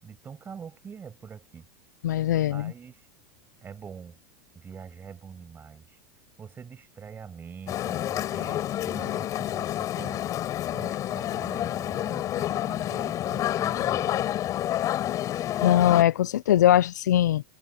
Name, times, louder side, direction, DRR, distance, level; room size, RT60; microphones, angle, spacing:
voice 1, 0.0-1.7 2.5-3.0 3.6-4.2 4.5-6.0 6.4-10.2 10.7-14.3, right 6 dB, 20° right, 6.7 m, -44 dB
voice 2, 2.0-2.7 15.6-17.4, left 12 dB, 90° left, 0.5 m, -21 dB
sound 1, 7.7-16.0, left 12 dB, 40° left, 5.2 m, -29 dB
supercardioid pair, 120°, 9 cm